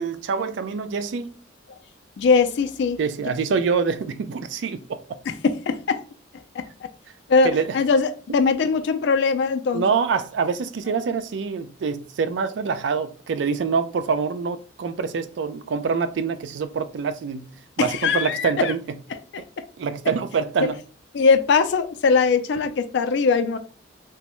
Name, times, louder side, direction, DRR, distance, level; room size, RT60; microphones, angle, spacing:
voice 1, 0.0-1.4 3.0-5.0 7.4-7.6 9.7-17.5 17.8-18.8 19.8-20.8, right 5 dB, 70° right, 0.3 m, -25 dB
voice 2, 2.2-3.0 5.3-6.0 6.3-6.9 7.3-9.8 17.8-18.7 19.3-19.6 20.6-20.7 21.1-23.6, left 5 dB, 65° left, 0.3 m, -21 dB
3.4 x 2.0 x 2.9 m
head